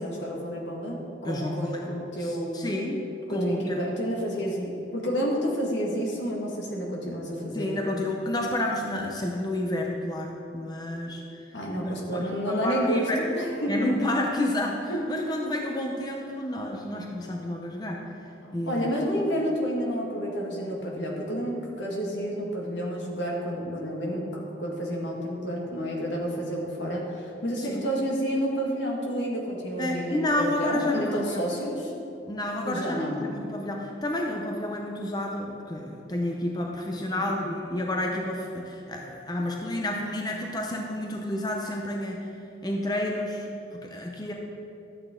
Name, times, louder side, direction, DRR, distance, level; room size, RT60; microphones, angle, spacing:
voice 1, 0.0-2.7 3.3-7.7 11.5-14.0 14.9-15.0 18.4-31.9 32.6-33.2 37.1-37.5, equal, 80° left, -2 dB, 1.9 m, -30 dB
voice 2, 1.2-1.8 2.2-3.0 3.3-3.8 7.5-11.5 11.8-13.2 13.7-18.0 18.5-18.9 27.6-27.8 29.8-31.4 32.2-33.0 33.2-42.3 42.6-44.3, left 1 dB, 20° left, 0 dB, 0.7 m, -30 dB
12.5 x 8.6 x 3.8 m, 2.7 s
head